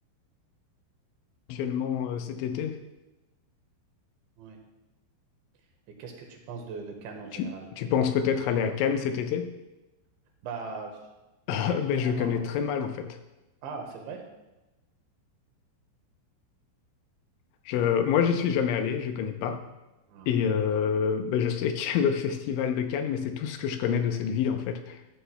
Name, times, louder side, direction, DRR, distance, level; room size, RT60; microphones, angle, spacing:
voice 1, 1.5-2.8 7.3-9.5 11.5-13.2 17.7-19.6 20.3-25.0, left 7 dB, 80° left, 6 dB, 3.0 m, -27 dB
voice 2, 6.0-7.7 10.4-11.0 11.6-12.4 13.6-14.2 20.1-20.3 20.8-20.9, right 4 dB, 75° right, 3 dB, 3.4 m, -40 dB
13.5 x 12.5 x 2.2 m, 1.0 s
omnidirectional pair, 5.5 m